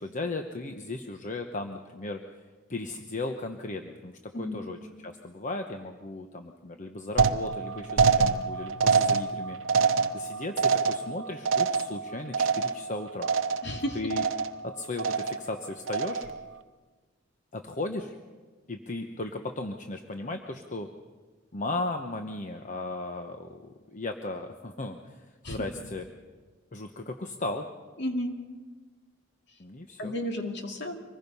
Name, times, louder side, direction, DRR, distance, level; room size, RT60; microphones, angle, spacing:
voice 1, 0.0-2.2 2.7-9.6 10.1-13.3 13.9-14.3 14.6-16.3 17.5-18.1 18.7-20.9 21.5-26.0 26.7-27.7 29.6-30.1, left 2 dB, 40° left, 5 dB, 1.0 m, -36 dB
voice 2, 4.3-4.7 13.6-14.0 25.4-25.6 28.0-28.4 30.0-31.0, left 1 dB, 60° left, 3 dB, 2.4 m, -32 dB
sound 1, 7.2-13.0 13.2-13.8 14.1-14.7 15.0-15.5 15.9-16.4, right 5 dB, 75° right, 0.8 m, -26 dB
25.0 x 20.0 x 5.5 m, 1.4 s
head